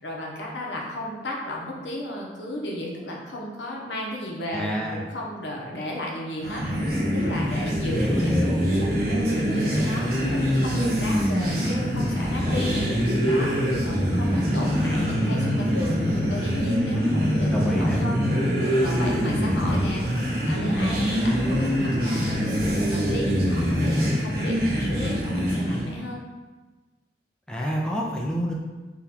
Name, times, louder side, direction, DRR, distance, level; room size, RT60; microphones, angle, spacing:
voice 1, 0.0-8.3 9.3-18.2 18.5-26.2, left 1 dB, 85° left, -2 dB, 0.8 m, -34 dB
voice 2, 4.5-5.0 7.9-8.6 17.5-18.0 27.5-28.5, equal, 5° left, -3 dB, 0.4 m, -28 dB
sound 1, 6.4-25.9, equal, 55° right, 0.8 m, -24 dB
3.8 x 2.3 x 4.2 m, 1.3 s
head